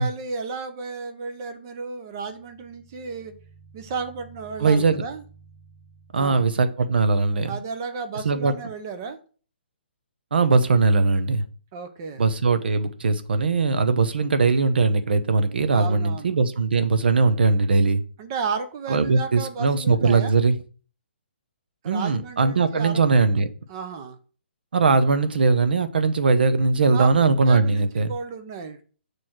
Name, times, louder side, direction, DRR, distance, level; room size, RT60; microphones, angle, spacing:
voice 1, 0.0-3.3 3.7-5.2 6.2-6.5 7.4-9.2 11.7-12.2 15.7-16.3 18.2-20.4 21.8-23.0 23.7-24.2 26.9-27.1 27.5-28.8, right 5 dB, 20° right, 0.6 m, -33 dB
sound 1, 2.2-6.9, right 5 dB, 35° right, 4.0 m, -51 dB
voice 2, 4.6-5.0 6.1-7.5 8.2-8.5 10.3-11.4 12.2-18.0 18.9-20.6 21.8-23.5 24.7-28.1, right 4 dB, 60° right, 0.8 m, -20 dB
6.8 x 3.2 x 5.8 m
hypercardioid pair, 180°, 6 cm